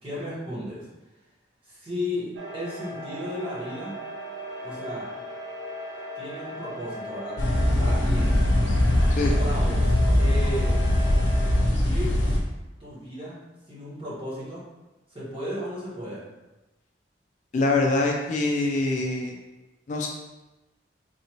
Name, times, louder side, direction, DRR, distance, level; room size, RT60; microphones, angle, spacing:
voice 1, 0.0-0.9 1.6-4.0 4.6-5.1 6.2-8.5 9.2-10.8 11.6-12.2 12.8-13.4 13.7-14.6 15.1-16.2, left 1 dB, 30° right, -9 dB, 1.4 m, -35 dB
sound 1, 2.4-11.6, equal, 90° right, 0.6 m, -38 dB
sound 2, 7.4-12.4, left 1 dB, 80° left, 0.7 m, -21 dB
voice 2, 17.5-19.4 19.9-20.1, left 2 dB, 40° left, 1 dB, 0.3 m, -24 dB
4.0 x 2.6 x 3.0 m, 1.1 s
head